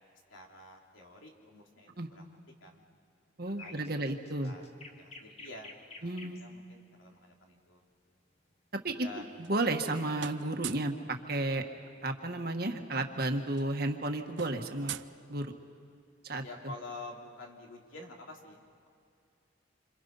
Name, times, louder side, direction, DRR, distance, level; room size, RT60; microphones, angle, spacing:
voice 1, 0.3-2.8 3.6-4.1 4.4-7.9 9.0-9.3 16.4-18.9, left 2 dB, 85° left, 0 dB, 3.5 m, -49 dB
voice 2, 3.4-4.5 6.0-6.5 8.7-11.6 12.0-14.9 15.3-15.5 16.2-16.4, right 2 dB, 50° right, 4 dB, 1.6 m, -33 dB
sound 1, 3.5-6.5 8.5-8.8, left 3 dB, 35° left, 1.8 m, -50 dB
sound 2, 9.1-9.9 10.2-11.0 12.4-12.5 12.7-12.9 13.2-15.8, right 10 dB, 65° right, 0.5 m, -44 dB
27.5 x 26.5 x 5.6 m, 2.5 s
head